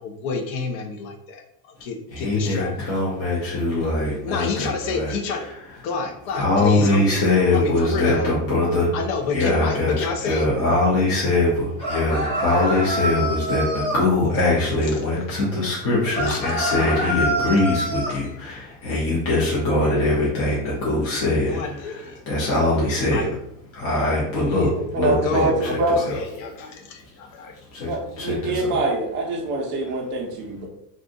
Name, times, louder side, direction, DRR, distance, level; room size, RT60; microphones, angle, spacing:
voice 1, 0.0-1.4 1.8-2.7 4.2-5.4 5.8-7.2 7.5-8.3 8.9-10.5 12.8-13.1 14.9-15.0 16.3-16.4 18.1-18.4 21.5-22.2 23.1-23.3 24.4-24.7 25.2-27.6, left 4 dB, 60° left, 4 dB, 0.7 m, -29 dB
voice 2, 2.1-5.4 6.4-8.9 9.3-23.2 23.7-26.2 27.7-28.8 29.8-29.9, left 2 dB, 30° left, -6 dB, 0.7 m, -22 dB
sound 1, 11.8-14.0 16.1-18.1, equal, 10° left, 1.2 m, -25 dB
voice 3, 24.9-26.0 27.9-30.7, right 2 dB, 25° right, -1 dB, 0.5 m, -24 dB
2.6 x 2.3 x 3.7 m, 0.75 s
supercardioid pair, 160°, 47 cm